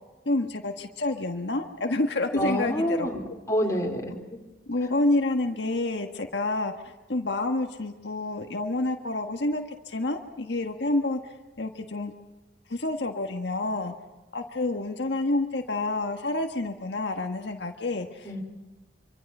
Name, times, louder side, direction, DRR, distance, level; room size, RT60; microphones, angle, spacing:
voice 1, 0.2-3.1 4.7-6.7 7.1-11.3 11.6-12.1 12.7-13.9 14.3-18.3, left 2 dB, 75° left, 4 dB, 1.5 m, -28 dB
voice 2, 2.3-3.2 3.5-4.1 18.2-18.4, equal, 20° left, 0 dB, 3.9 m, -27 dB
25.5 x 25.5 x 5.5 m, 1.2 s
head